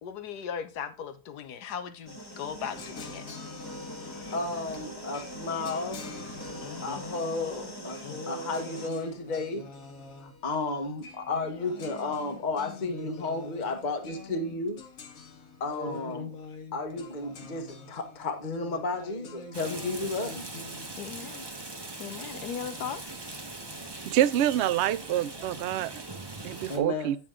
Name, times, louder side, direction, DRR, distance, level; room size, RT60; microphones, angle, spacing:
voice 1, 0.0-3.2 4.1-4.3 6.6-7.0 8.0-8.3 15.9-16.3 21.0-21.5 22.0-23.0 23.7-23.8, left 8 dB, 85° left, 1.5 m, -38 dB
sound 1, 2.1-8.9, right 1 dB, 15° left, 1.4 m, -42 dB
sound 2, 2.6-20.8, left 3 dB, 60° left, 1.7 m, -45 dB
voice 2, 4.3-6.1 6.8-8.0 8.3-9.7 10.2-14.8 15.6-16.4 16.7-20.5 26.7-27.2, left 3 dB, 30° left, 1.2 m, -33 dB
Rain, 19.5-26.8, right 2 dB, 20° right, 1.0 m, -41 dB
voice 3, 24.1-26.0 26.4-27.2, right 12 dB, 75° right, 0.6 m, -26 dB
9.5 x 7.0 x 3.7 m
omnidirectional pair, 1.7 m